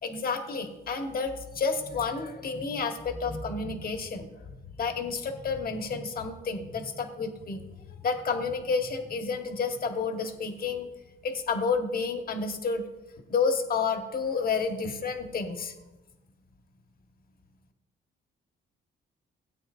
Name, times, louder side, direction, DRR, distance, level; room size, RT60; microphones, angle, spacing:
voice 1, 0.0-4.3 4.8-7.6 7.9-10.9 11.2-12.8 13.3-15.7, left 5 dB, 50° left, 5 dB, 1.3 m, -30 dB
16.5 x 8.7 x 2.5 m, 1.1 s
cardioid pair, 90°, 20 cm